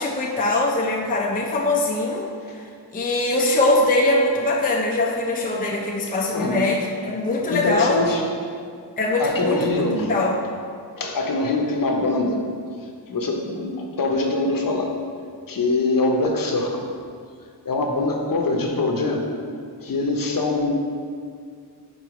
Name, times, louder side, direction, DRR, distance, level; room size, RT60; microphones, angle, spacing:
voice 1, 0.0-2.3 2.9-8.0 9.0-9.7 10.1-10.4, left 2 dB, 20° left, 0 dB, 0.5 m, -22 dB
voice 2, 6.3-6.6 7.2-8.2 9.2-10.1 11.0-12.4 13.1-14.9 15.5-16.9 17.6-19.3 19.8-20.7, left 2 dB, 50° left, 2 dB, 0.8 m, -23 dB
4.7 x 4.5 x 5.1 m, 2.2 s
wide cardioid pair, 115°, 43 cm